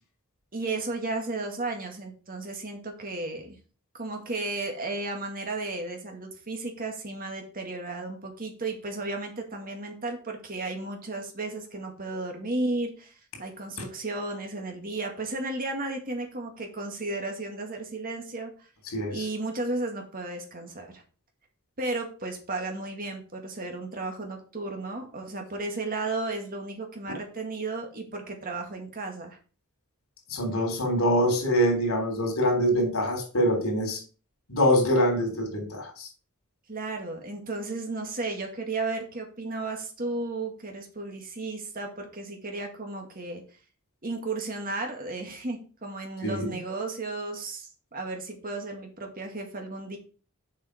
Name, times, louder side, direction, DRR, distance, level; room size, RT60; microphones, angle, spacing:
voice 1, 0.5-3.6 3.9-13.1 13.4-18.5 19.1-21.0 21.8-29.4 36.7-43.4 44.0-50.0, right 2 dB, 40° right, 3 dB, 2.0 m, -34 dB
voice 2, 18.9-19.2 27.1-27.2 30.3-34.0 34.5-36.1 46.2-46.5, equal, 85° left, 3 dB, 3.4 m, -24 dB
7.3 x 5.5 x 5.1 m, 0.37 s
head